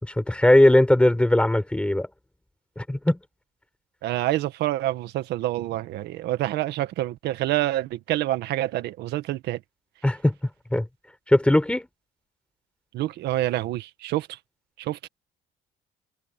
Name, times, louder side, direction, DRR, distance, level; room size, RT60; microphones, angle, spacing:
voice 1, 0.0-2.1 2.8-3.2 10.0-10.3 10.7-10.9 11.3-11.9, left 1 dB, 5° left, 4.4 m, -19 dB
voice 2, 4.0-9.6 12.9-14.4 14.8-15.1, right 15 dB, 80° right, 1.7 m, -27 dB
cardioid pair, 110°, 17 cm